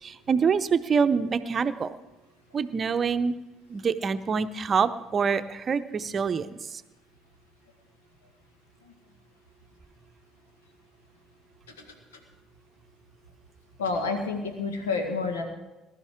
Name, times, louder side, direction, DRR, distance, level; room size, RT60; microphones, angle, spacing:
voice 1, 0.0-1.9 2.5-3.3 3.7-6.8, right 6 dB, 40° right, 11 dB, 0.7 m, -26 dB
voice 2, 13.8-15.4, left 4 dB, 80° left, 5 dB, 1.6 m, -29 dB
20.0 x 11.5 x 3.7 m, 1.0 s
figure-of-eight pair, 55°, 0 cm